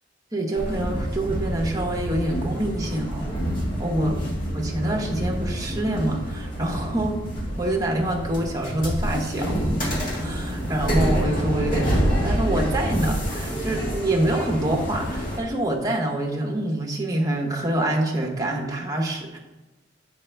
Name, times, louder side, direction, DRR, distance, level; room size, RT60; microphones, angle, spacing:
voice 1, 0.3-3.3 3.8-4.2 4.5-7.3 7.6-9.6 10.1-19.4, right 1 dB, 20° right, 0 dB, 0.9 m, -26 dB
sound 1, 0.5-15.4, equal, 45° left, 1.7 m, -27 dB
7.4 x 4.8 x 3.3 m, 1.1 s
head